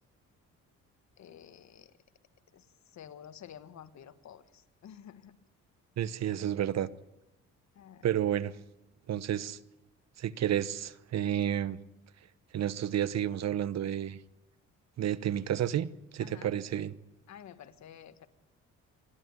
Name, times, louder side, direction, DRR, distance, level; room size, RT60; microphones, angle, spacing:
voice 1, 1.2-1.9 2.5-2.6 2.9-5.4 7.7-8.1 16.2-16.6 17.3-18.3, left 9 dB, 65° left, 11 dB, 1.5 m, -50 dB
voice 2, 6.0-6.9 8.0-8.5 9.1-9.6 10.2-11.8 12.5-14.2 15.0-15.9 16.1-17.0, right 10 dB, 60° right, 16 dB, 1.0 m, -31 dB
27.0 x 12.0 x 9.7 m, 0.95 s
cardioid pair, 90°, 30 cm